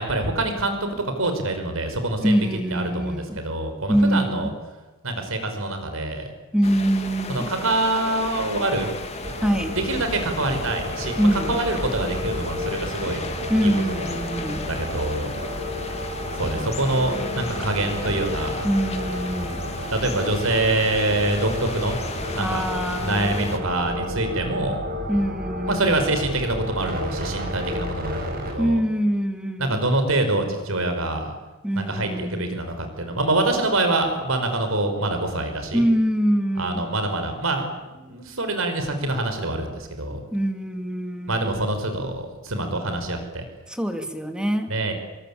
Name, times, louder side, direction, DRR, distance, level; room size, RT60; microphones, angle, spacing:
voice 1, 0.0-2.4 2.7-4.5 5.0-6.3 7.3-8.9 9.7-13.2 13.6-14.0 14.6-15.3 16.3-18.7 19.9-22.0 22.3-22.6 23.0-24.8 25.7-28.8 29.6-31.3 31.8-35.8 36.6-40.2 41.3-43.4 44.7-44.9, right 2 dB, 70° right, 6 dB, 5.6 m, -25 dB
voice 2, 2.2-3.4 3.9-4.5 6.5-7.5 9.4-9.8 11.2-11.6 13.5-14.6 18.6-19.6 22.4-23.4 25.1-26.1 28.6-29.8 31.6-32.7 35.7-36.8 40.3-41.6 43.7-44.7, equal, 5° right, 6 dB, 2.7 m, -24 dB
sound 1, 6.6-23.6, left 3 dB, 30° left, 2.7 m, -35 dB
sound 2, 9.2-28.5, equal, 45° right, 7.5 m, -32 dB
28.0 x 24.0 x 8.7 m, 1.1 s
head